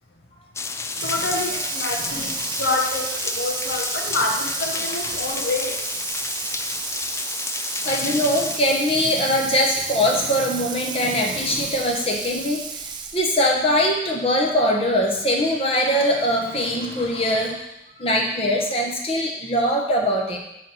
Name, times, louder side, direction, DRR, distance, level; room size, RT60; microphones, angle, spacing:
sound 1, 0.6-8.6, left 4 dB, 15° left, 0.3 m, -30 dB
Water tap faucet / Sink (filling or washing), 0.9-13.4, right 5 dB, 25° right, 0.7 m, -32 dB
voice 1, 1.0-2.3 2.6-5.7, left 2 dB, 85° left, 0 dB, 1.4 m, -27 dB
voice 2, 2.0-2.5 5.2-5.5 7.8-17.7 18.0-20.4, equal, 35° left, 0 dB, 1.2 m, -22 dB
10.0 x 4.2 x 7.0 m, 0.88 s
head